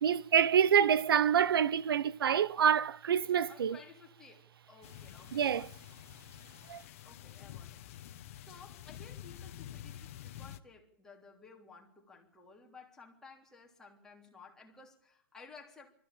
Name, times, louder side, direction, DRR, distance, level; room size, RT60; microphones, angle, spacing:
voice 1, 0.0-3.8 5.3-5.7 6.7-6.8, right 8 dB, 85° right, 0.9 m, -27 dB
voice 2, 3.5-6.0 7.0-15.9, left 4 dB, 5° left, 3.3 m, -56 dB
sound 1, 4.8-10.6, left 11 dB, 40° left, 1.4 m, -48 dB
25.0 x 15.0 x 8.7 m
hypercardioid pair, 175°, 12 cm